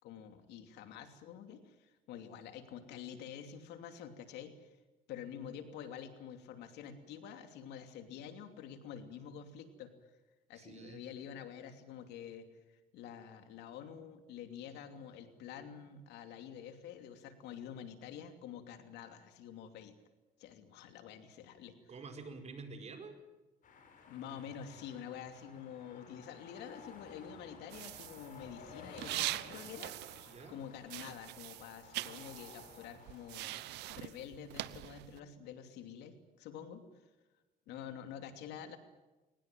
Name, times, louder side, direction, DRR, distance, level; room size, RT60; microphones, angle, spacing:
voice 1, 0.0-4.7 5.1-10.1 10.5-12.5 12.9-19.9 20.4-21.7 24.1-33.6 33.9-36.8 37.7-38.8, left 8 dB, 85° left, 7 dB, 2.9 m, -48 dB
voice 2, 10.5-11.0 21.9-23.2 30.3-30.6, right 4 dB, 40° right, 6 dB, 4.7 m, -48 dB
sound 1, 23.6-33.9, left 5 dB, 50° left, 6.0 m, -55 dB
sound 2, 27.7-30.6 30.8-35.2, right 17 dB, 85° right, 0.9 m, -43 dB
22.5 x 20.0 x 9.1 m, 1.1 s
cardioid pair, 110°, 17 cm